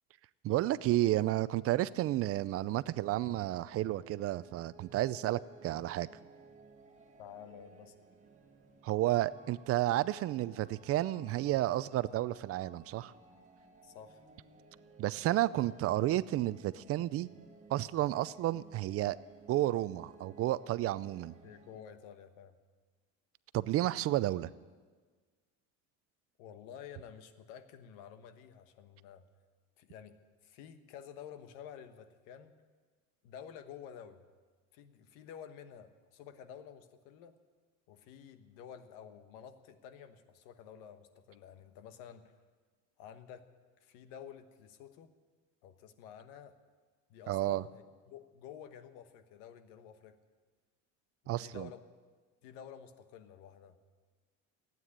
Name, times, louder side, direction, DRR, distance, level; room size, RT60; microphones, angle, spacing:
voice 1, 0.4-6.1 8.8-13.1 15.0-17.3 17.7-19.2 19.5-21.3 23.5-24.5 47.3-47.6 51.3-51.7, right 15 dB, 45° right, 17 dB, 0.5 m, -31 dB
sound 1, 2.9-21.8, right 4 dB, 25° right, 1.9 m, -59 dB
voice 2, 7.2-7.9 13.8-14.2 21.4-22.5 26.4-29.2 29.8-32.5 33.2-34.2 34.7-37.4 37.9-42.4 43.0-43.4 43.8-45.1 45.6-46.5 47.1-50.2 51.2-51.8 52.4-53.8, left 8 dB, 85° left, 10 dB, 1.3 m, -51 dB
15.5 x 9.3 x 9.8 m, 1.5 s
cardioid pair, 135°, 32 cm